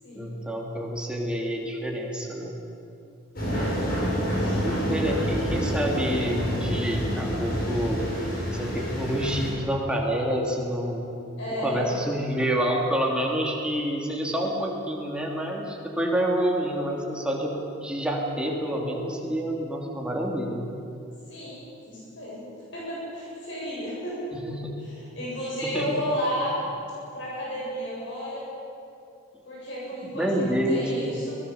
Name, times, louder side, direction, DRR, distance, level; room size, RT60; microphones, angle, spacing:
voice 1, 0.1-2.6 4.6-8.2 8.5-11.1 11.6-17.5 17.8-20.6 24.3-24.8 25.6-26.1 30.0-31.1, equal, 5° right, -1 dB, 2.9 m, -28 dB
voice 2, 3.4-4.6 11.4-11.9 21.3-22.5 22.7-24.2 24.8-26.6 27.1-28.4 29.5-31.3, equal, 70° left, -6 dB, 7.8 m, -33 dB
sound 1, 3.4-9.5, equal, 50° left, 6.6 m, -28 dB
23.0 x 20.5 x 7.1 m, 2.7 s
head